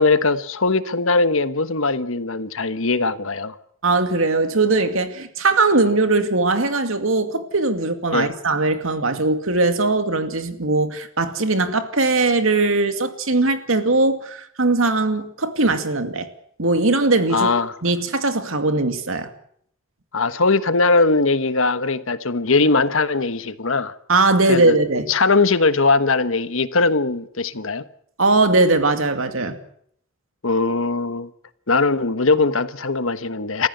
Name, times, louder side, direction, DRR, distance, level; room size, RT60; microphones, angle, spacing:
voice 1, 0.0-3.5 8.1-8.3 17.3-17.7 20.1-23.9 24.5-24.8 25.1-27.8 30.4-31.3 31.7-33.7, left 3 dB, 75° left, 1.3 m, -20 dB
voice 2, 3.8-16.3 16.6-17.5 17.8-19.3 24.1-25.1 28.2-29.6, right 3 dB, 75° right, 2.3 m, -20 dB
29.0 x 15.0 x 8.1 m
head